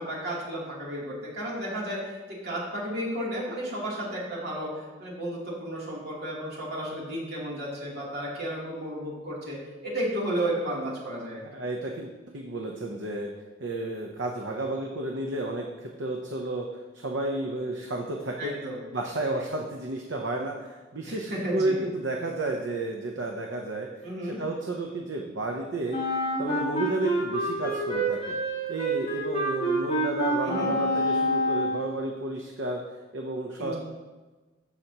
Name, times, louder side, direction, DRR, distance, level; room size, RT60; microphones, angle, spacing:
voice 1, 0.0-2.0 2.4-4.7 5.0-11.4 18.4-18.8 21.0-21.8 24.0-24.4 30.4-30.8 33.6-33.8, right 1 dB, 60° right, -5 dB, 3.0 m, -33 dB
voice 2, 11.4-13.3 13.6-15.6 16.0-16.7 16.9-18.6 18.9-23.9 24.3-26.0 26.4-28.4 28.7-32.8 33.1-33.7, right 2 dB, 75° right, 1 dB, 0.8 m, -32 dB
Wind instrument woodwind instrument, 25.9-31.9, equal, 35° left, 2.8 m, -27 dB
14.5 x 5.8 x 2.9 m, 1.2 s
head